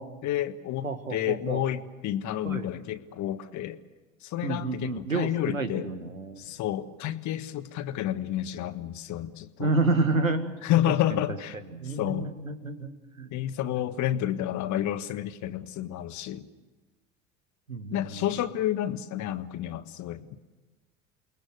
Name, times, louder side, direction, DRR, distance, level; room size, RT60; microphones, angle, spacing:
voice 1, 0.2-3.8 4.2-5.9 6.4-9.7 10.6-11.6 12.0-12.3 13.3-16.5 17.9-20.3, left 12 dB, 45° left, 11 dB, 1.6 m, -30 dB
voice 2, 0.8-1.6 2.4-2.7 4.4-6.4 9.6-10.6 11.1-11.2 11.7-12.9 13.2-13.3 17.7-18.2, right 3 dB, 90° right, 8 dB, 2.0 m, -29 dB
29.0 x 21.5 x 6.5 m, 1.3 s
figure-of-eight pair, 65°, 39 cm